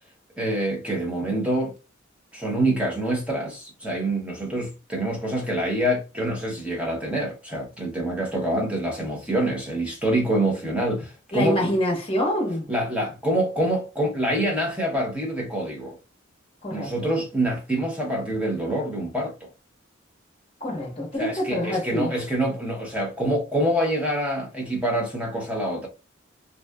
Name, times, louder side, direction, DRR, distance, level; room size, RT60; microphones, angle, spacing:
voice 1, 0.4-1.7 2.3-11.7 12.7-16.0 16.7-19.5 21.2-25.9, right 1 dB, 5° right, 0.6 m, -26 dB
voice 2, 11.3-12.7 16.6-16.9 20.6-22.1, equal, 25° left, 0.9 m, -26 dB
2.7 x 2.2 x 2.2 m
head